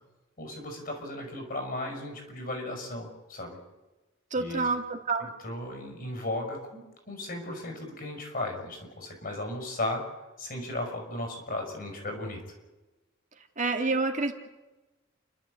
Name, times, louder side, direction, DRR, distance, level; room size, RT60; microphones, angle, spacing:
voice 1, 0.4-3.6 4.3-4.7 5.2-10.0 10.4-12.4, left 1 dB, 50° left, 3 dB, 6.7 m, -36 dB
voice 2, 4.3-5.3 13.6-14.3, right 3 dB, 40° right, 5 dB, 2.0 m, -28 dB
30.0 x 12.5 x 8.3 m, 1.1 s
head